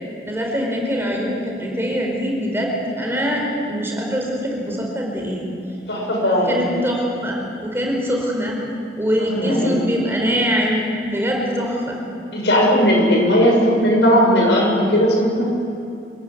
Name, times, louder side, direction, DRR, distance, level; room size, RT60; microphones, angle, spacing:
voice 1, 0.2-5.5 6.5-8.6 9.0-12.0, equal, 15° right, -1 dB, 4.7 m, -23 dB
voice 2, 5.9-6.6 9.4-9.8 12.3-15.5, equal, 80° left, -1 dB, 7.1 m, -17 dB
26.5 x 15.0 x 9.7 m, 2.6 s
head